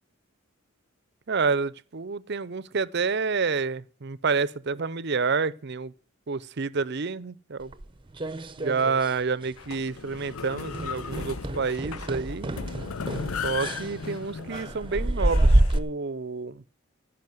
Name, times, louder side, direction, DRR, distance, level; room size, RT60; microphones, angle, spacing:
voice 1, 1.3-5.9 6.3-7.7 8.6-12.5 13.4-16.6, right 4 dB, 55° right, 0.6 m, -29 dB
sound 1, 7.7-9.2 9.4-9.8 10.1-10.3 10.7-15.8, right 1 dB, 25° right, 0.8 m, -27 dB
sound 2, 9.6-15.8, left 6 dB, 90° left, 0.7 m, -37 dB
16.5 x 5.6 x 9.4 m
head